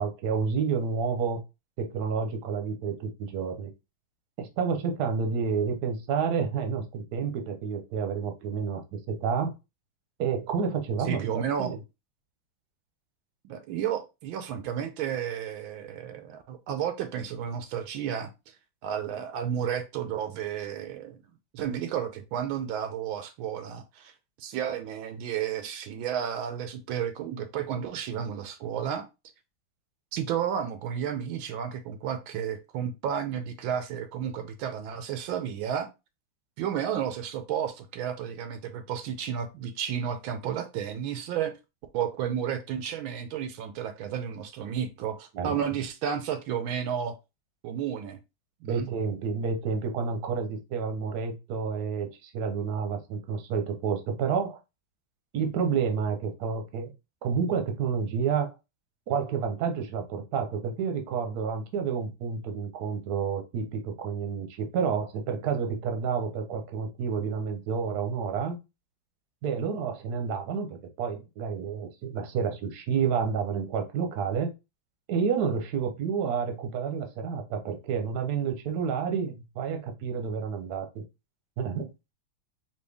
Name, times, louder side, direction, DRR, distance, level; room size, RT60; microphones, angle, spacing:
voice 1, 0.0-1.4 1.8-3.7 4.4-9.5 10.2-11.3 11.6-11.8 45.3-45.6 48.6-54.6 55.3-56.9 57.2-58.5 59.1-68.6 69.4-70.7 71.0-74.5 75.1-81.0 81.6-81.9, right 6 dB, 60° right, 1.2 m, -29 dB
voice 2, 11.1-11.8 13.4-18.3 18.8-21.2 21.5-24.1 24.4-29.1 30.1-35.9 36.6-41.5 41.9-47.1 47.6-48.2 48.6-48.9, right 8 dB, 85° right, 1.4 m, -32 dB
4.3 x 2.9 x 3.3 m
omnidirectional pair, 2.2 m